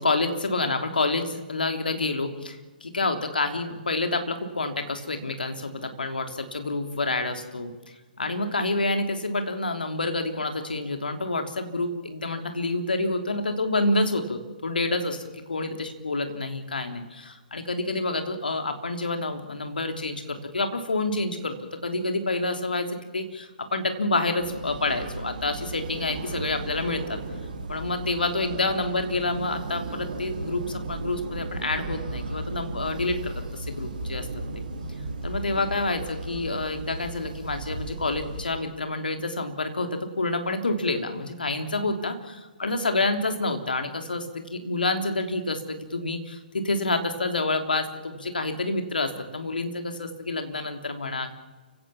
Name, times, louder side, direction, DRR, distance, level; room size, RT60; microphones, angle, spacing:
voice 1, 0.0-7.7 8.2-15.2 15.5-21.6 21.8-27.2 27.7-34.3 35.2-51.4, left 2 dB, 70° left, 6 dB, 3.3 m, -28 dB
sound 1, 24.4-38.5, right 2 dB, 55° right, 4.4 m, -35 dB
29.5 x 17.0 x 7.2 m, 1.2 s
figure-of-eight pair, 130°, 5 cm